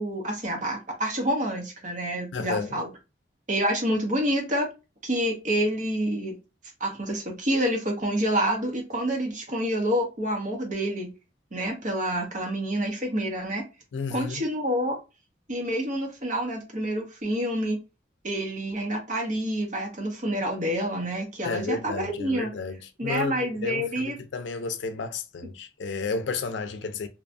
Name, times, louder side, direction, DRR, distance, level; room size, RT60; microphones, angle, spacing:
voice 1, 0.0-2.9 3.5-4.7 5.0-6.4 6.8-11.1 11.5-13.6 14.1-15.0 15.5-17.8 18.2-22.5 23.0-24.2, equal, 45° right, 0.8 m, -28 dB
voice 2, 2.3-2.8 13.9-14.4 21.4-27.1, left 4 dB, 80° left, 0.4 m, -32 dB
2.7 x 2.3 x 2.5 m
head